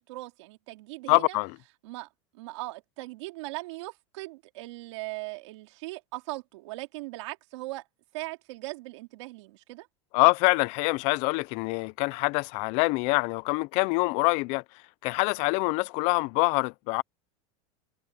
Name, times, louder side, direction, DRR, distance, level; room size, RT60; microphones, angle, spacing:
voice 1, 0.0-1.4 1.8-2.1 2.3-7.9 8.1-9.9, right 21 dB, 70° right, 3.3 m, -39 dB
voice 2, 1.1-1.6 10.1-14.6 15.0-17.0, left 26 dB, 45° left, 0.5 m, -25 dB
supercardioid pair, 160°, 16 cm